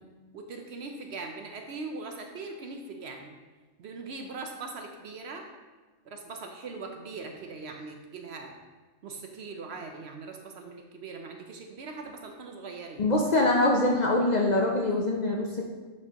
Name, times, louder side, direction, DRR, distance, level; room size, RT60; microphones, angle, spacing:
voice 1, 0.3-3.3 3.8-5.5 6.0-8.6 9.0-13.1, right 3 dB, 60° right, 4 dB, 0.8 m, -40 dB
voice 2, 13.0-15.6, left 2 dB, 50° left, -1 dB, 0.5 m, -24 dB
8.2 x 4.7 x 2.9 m, 1.3 s
omnidirectional pair, 1.4 m